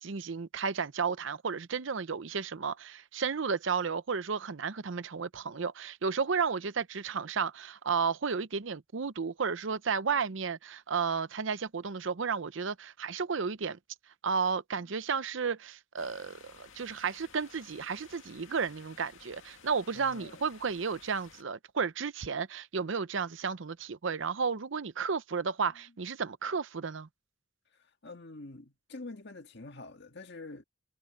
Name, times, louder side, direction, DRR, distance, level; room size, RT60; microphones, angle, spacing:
voice 1, 0.0-13.8 14.2-27.1, right 5 dB, 65° right, 0.7 m, -33 dB
sound 1, 16.0-21.4, left 6 dB, 75° left, 2.2 m, -55 dB
voice 2, 19.9-20.4 27.7-30.6, left 2 dB, 55° left, 1.9 m, -46 dB
head